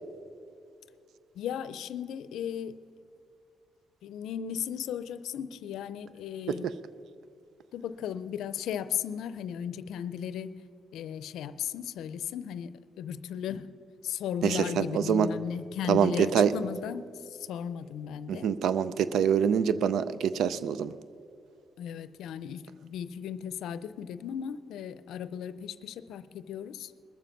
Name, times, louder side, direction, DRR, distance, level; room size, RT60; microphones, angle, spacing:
voice 1, 1.3-2.8 4.0-6.7 7.7-10.6 10.9-13.7 14.0-18.5 21.8-26.9, left 8 dB, 80° left, 15 dB, 0.5 m, -36 dB
voice 2, 14.4-15.3 15.9-16.5 18.3-20.9, right 8 dB, 75° right, 15 dB, 0.4 m, -25 dB
21.0 x 7.2 x 5.7 m, 2.5 s
cardioid pair, 90°, 0 cm